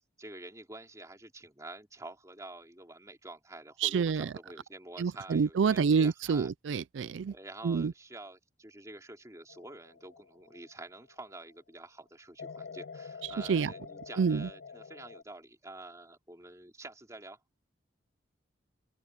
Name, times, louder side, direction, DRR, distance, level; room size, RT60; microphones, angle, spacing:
voice 1, 0.2-6.5 7.3-17.4, right 2 dB, 15° right, 3.6 m, -48 dB
voice 2, 3.8-4.3 5.0-7.3 7.6-7.9 13.5-13.7 14.2-14.5, right 6 dB, 80° right, 0.4 m, -27 dB
sound 1, 9.5-11.3 12.4-15.2, left 5 dB, 65° left, 0.5 m, -47 dB
open air
head